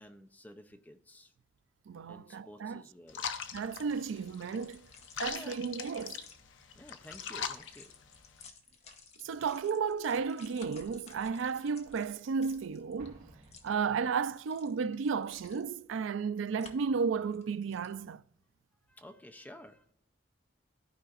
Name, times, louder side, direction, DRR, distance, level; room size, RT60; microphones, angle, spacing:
voice 1, 0.0-1.3 2.1-3.3 5.3-5.6 6.8-7.9 18.9-19.8, left 1 dB, 10° left, 0.5 m, -52 dB
voice 2, 1.9-2.8 3.5-4.8 5.2-6.2 9.2-13.2 13.6-18.2, right 5 dB, 75° right, 0.4 m, -33 dB
sound 1, 3.1-8.5, left 7 dB, 70° left, 0.6 m, -42 dB
sound 2, 3.9-6.3 6.9-13.1 13.4-13.8 14.3-15.7 16.6-17.0 17.3-18.0, left 5 dB, 35° left, 0.9 m, -56 dB
Explosion, 13.0-14.6, right 1 dB, 50° right, 2.3 m, -57 dB
14.5 x 4.9 x 2.4 m
head